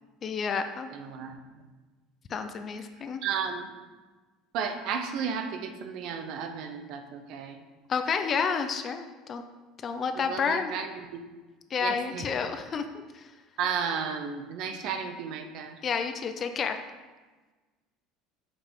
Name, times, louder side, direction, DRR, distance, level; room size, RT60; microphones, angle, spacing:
voice 1, 0.2-0.9 2.3-3.2 7.9-9.4 9.8-10.7 11.7-13.3 15.8-16.8, left 6 dB, 25° left, 8 dB, 0.3 m, -30 dB
voice 2, 0.9-1.6 3.2-3.7 4.5-7.6 10.1-11.2 11.8-12.3 13.6-15.8, right 6 dB, 45° right, 7 dB, 0.6 m, -33 dB
6.6 x 5.7 x 3.5 m, 1.3 s
cardioid pair, 175°, 0 cm